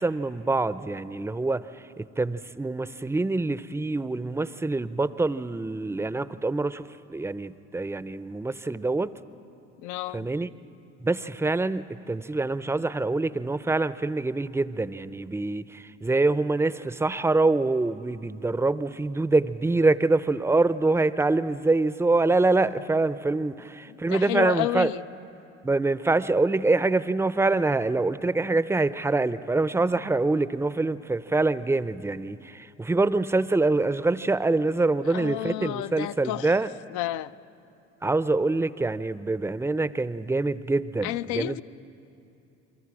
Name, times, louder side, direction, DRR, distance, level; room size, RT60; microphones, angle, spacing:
voice 1, 0.0-1.7 2.0-9.1 10.1-10.5 11.0-24.9 25.6-36.7 38.0-41.6, right 3 dB, 5° right, 0.6 m, -25 dB
voice 2, 9.8-10.3 23.9-25.0 35.1-36.6 36.9-37.3 41.0-41.6, left 14 dB, 55° left, 0.6 m, -31 dB
29.5 x 23.5 x 4.9 m
hypercardioid pair, 65°, 35 cm